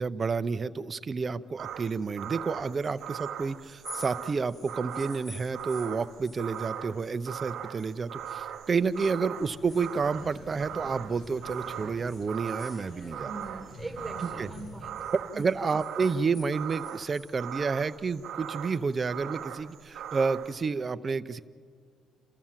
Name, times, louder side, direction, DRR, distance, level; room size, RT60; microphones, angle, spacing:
voice 1, 0.0-13.3 14.2-14.5 15.1-21.4, right 5 dB, 35° right, 13 dB, 0.7 m, -30 dB
sound 1, 1.6-20.6, right 10 dB, 75° right, 0.9 m, -40 dB
sound 2, 3.7-8.0 8.3-10.8 11.2-13.6 13.9-17.4, left 2 dB, 20° left, 0.8 m, -51 dB
sound 3, 9.3-14.9, left 1 dB, 80° left, 4.7 m, -48 dB
voice 2, 13.0-15.5, right 2 dB, 15° right, 5 dB, 1.6 m, -42 dB
29.0 x 14.0 x 7.4 m, 2.1 s
cardioid pair, 90°, 0 cm